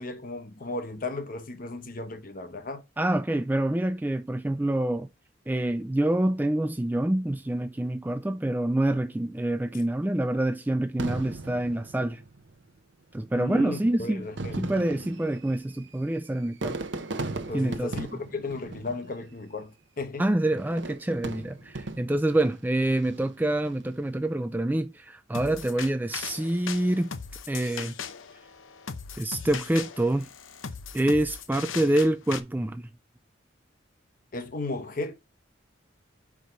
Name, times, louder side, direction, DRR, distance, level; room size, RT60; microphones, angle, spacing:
voice 1, 0.0-2.8 13.3-14.7 17.5-20.3 34.3-35.1, left 2 dB, 45° left, 0.9 m, -35 dB
voice 2, 3.0-5.1 5.5-12.2 13.1-14.3 14.6-16.8 17.5-18.2 20.2-27.1 27.5-27.9 29.2-30.3 30.9-32.9, right 1 dB, 10° right, 0.3 m, -26 dB
Fireworks, 11.0-12.6 13.5-13.6 14.2-19.5 20.6-22.4 22.9-23.4, right 2 dB, 65° right, 0.8 m, -37 dB
sound 1, 25.3-32.4, left 6 dB, 90° left, 0.8 m, -39 dB
5.1 x 4.8 x 5.6 m
head